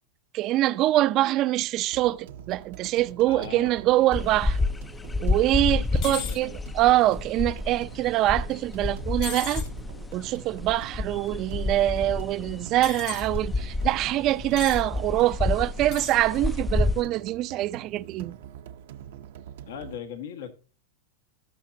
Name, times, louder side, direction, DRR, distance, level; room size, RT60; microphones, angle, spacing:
voice 1, 0.3-4.6 5.2-9.6 10.1-18.4, right 15 dB, 40° right, 0.5 m, -24 dB
sound 1, 1.9-20.0, right 10 dB, 70° right, 0.8 m, -45 dB
voice 2, 3.2-4.3 5.8-6.6 19.6-20.5, left 8 dB, 75° left, 1.5 m, -40 dB
sound 2, 4.1-17.0, left 3 dB, 10° left, 0.5 m, -30 dB
sound 3, 6.0-6.4 9.2-9.7 12.8-13.3 14.6-14.8 15.8-16.2, left 10 dB, 45° left, 1.8 m, -36 dB
18.0 x 6.0 x 2.8 m
hypercardioid pair, 120°, 0 cm